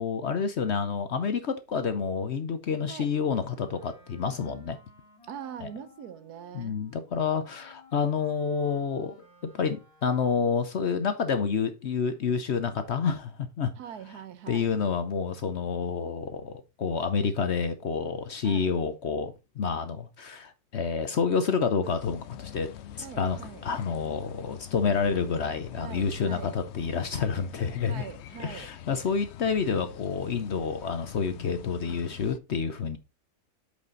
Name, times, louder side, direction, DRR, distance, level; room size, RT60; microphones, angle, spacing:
voice 1, 0.0-4.8 5.6-5.7 6.5-9.1 9.5-13.7 14.5-23.4 23.6-28.1 28.4-33.0, left 6 dB, 55° left, 0.9 m, -29 dB
Wind instrument woodwind instrument, 3.3-10.6, left 2 dB, 20° left, 2.7 m, -58 dB
voice 2, 5.3-6.9 13.8-14.7 18.4-18.7 23.0-23.6 25.8-26.5 27.9-28.7, right 8 dB, 75° right, 1.4 m, -42 dB
sound 1, 21.8-32.4, left 11 dB, 75° left, 0.6 m, -45 dB
8.2 x 5.1 x 3.8 m
omnidirectional pair, 1.7 m